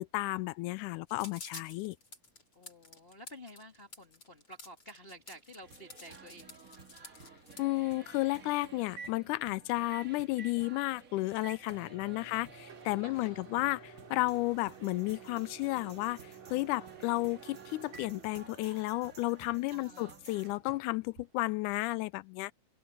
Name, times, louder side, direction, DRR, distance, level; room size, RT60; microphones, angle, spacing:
voice 1, 0.0-2.0 7.6-22.5, left 20 dB, 85° left, 2.0 m, -33 dB
sound 1, 1.1-7.6, left 3 dB, 40° left, 6.5 m, -50 dB
voice 2, 2.5-6.6 12.1-12.4 13.0-13.4 19.7-20.2, equal, 20° left, 1.7 m, -52 dB
sound 2, 5.6-20.5, right 5 dB, 35° right, 1.8 m, -55 dB
Microwave oven, 6.3-22.0, right 5 dB, 65° right, 5.2 m, -53 dB
open air
omnidirectional pair, 3.5 m